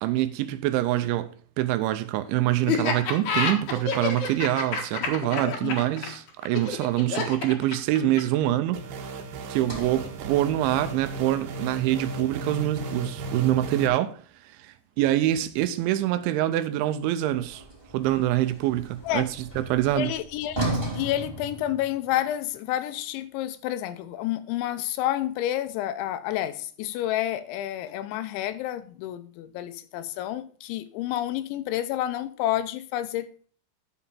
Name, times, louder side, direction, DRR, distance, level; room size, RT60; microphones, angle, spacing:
voice 1, 0.0-1.3 1.6-8.8 9.5-17.6 17.9-19.3 19.6-20.1, right 14 dB, 85° right, 2.9 m, -25 dB
Laughter, 2.7-8.4, left 5 dB, 60° left, 2.0 m, -28 dB
sound 1, 8.7-13.9, right 2 dB, 65° right, 2.9 m, -36 dB
Sliding door, 9.5-13.8 17.3-22.2, right 2 dB, 5° right, 2.2 m, -37 dB
voice 2, 19.9-20.7 20.9-33.5, left 13 dB, 80° left, 2.9 m, -29 dB
11.0 x 6.1 x 5.6 m
omnidirectional pair, 5.5 m